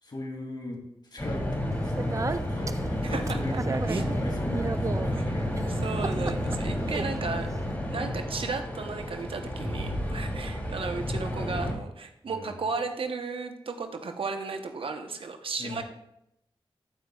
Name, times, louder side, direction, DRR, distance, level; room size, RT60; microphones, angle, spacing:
voice 1, 0.0-0.8 1.1-5.7 5.9-6.0 7.1-7.6 12.3-12.6 15.6-15.8, left 1 dB, 50° left, 0 dB, 2.6 m, -39 dB
sound 1, 1.2-11.7, equal, 25° left, 3.0 m, -31 dB
Speech, 1.7-7.8, right 3 dB, 35° right, 0.5 m, -36 dB
voice 2, 3.0-3.4 3.9-4.0 5.1-5.2 5.6-7.5 7.9-15.8, right 4 dB, 75° right, 6 dB, 0.9 m, -34 dB
13.5 x 8.0 x 2.3 m, 0.81 s
wide cardioid pair, 65°, 9 cm